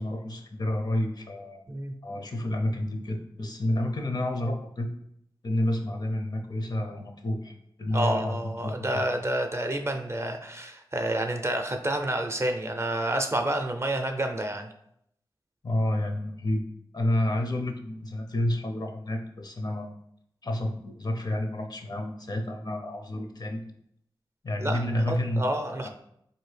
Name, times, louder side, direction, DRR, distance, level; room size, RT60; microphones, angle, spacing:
voice 1, 0.0-1.6 2.0-4.9 5.4-9.0 15.6-16.6 16.9-19.9 20.4-23.7 24.4-25.5 25.8-25.9, left 1 dB, 55° left, 3 dB, 0.6 m, -29 dB
voice 2, 7.9-14.7 24.6-24.8 25.1-25.9, right 1 dB, 30° right, 5 dB, 0.5 m, -29 dB
4.1 x 2.7 x 3.3 m, 0.73 s
cardioid pair, 50°, 9 cm